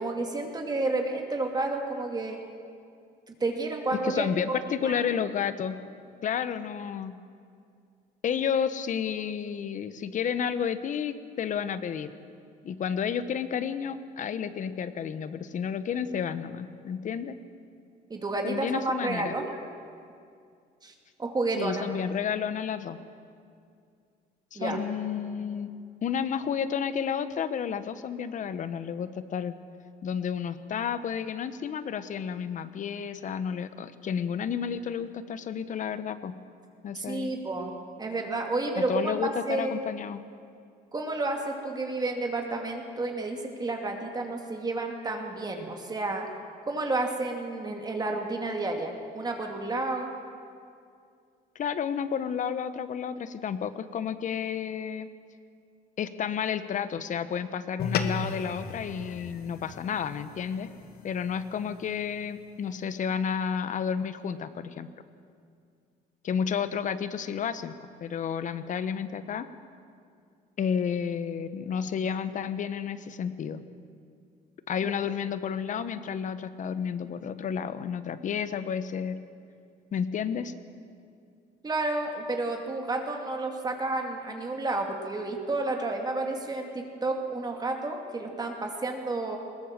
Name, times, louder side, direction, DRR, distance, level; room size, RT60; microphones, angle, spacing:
voice 1, 0.0-2.4 3.3-4.3 4.7-5.0 18.1-19.6 20.8-20.9 21.2-21.9 24.6-24.8 36.9-37.7 38.0-39.8 40.9-46.3 46.7-50.1 74.8-75.0 81.6-89.4, right 2 dB, 25° right, 2 dB, 2.4 m, -31 dB
voice 2, 4.0-5.8 6.2-7.2 8.2-12.1 12.6-17.4 18.4-19.4 21.6-23.0 24.5-25.7 26.0-29.5 30.0-36.3 36.8-37.3 38.8-40.2 51.5-55.1 56.0-60.7 61.0-64.9 66.2-67.7 68.0-69.5 70.6-73.6 74.7-79.2 79.9-80.5, left 7 dB, 50° left, 12 dB, 1.0 m, -31 dB
sound 1, 57.8-62.4, left 6 dB, 70° left, 1.4 m, -36 dB
20.5 x 17.5 x 7.5 m, 2.3 s
cardioid pair, 110°, 17 cm